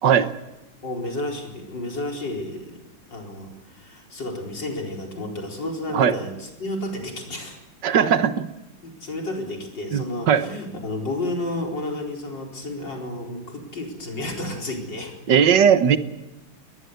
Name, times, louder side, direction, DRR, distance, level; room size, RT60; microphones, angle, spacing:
voice 1, 0.8-2.8 3.1-7.6 8.8-15.1, left 1 dB, 60° left, 1 dB, 5.1 m, -31 dB
voice 2, 7.8-8.5 9.9-10.4 15.3-16.0, right 8 dB, 65° right, 11 dB, 1.7 m, -18 dB
21.5 x 19.5 x 8.1 m, 0.98 s
omnidirectional pair, 2.2 m